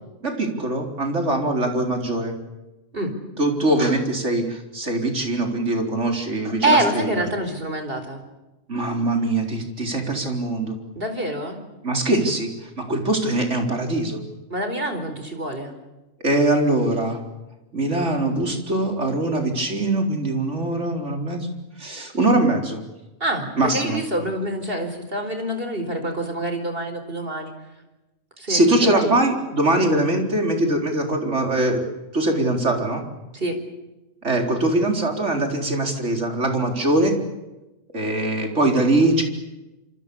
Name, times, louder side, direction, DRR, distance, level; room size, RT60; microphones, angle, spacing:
voice 1, 0.2-2.3 3.4-7.1 8.7-10.7 11.8-14.2 16.2-17.2 17.7-21.5 21.8-22.8 23.6-24.0 28.5-31.8 32.1-33.0 34.2-37.1 37.9-39.2, right 2 dB, 90° right, 3 dB, 4.6 m, -22 dB
voice 2, 6.6-8.2 10.9-11.6 14.5-15.7 23.2-27.5 28.4-29.2 33.3-33.6, right 1 dB, 55° right, 7 dB, 4.6 m, -26 dB
26.5 x 26.5 x 7.1 m, 1.0 s
omnidirectional pair, 1.2 m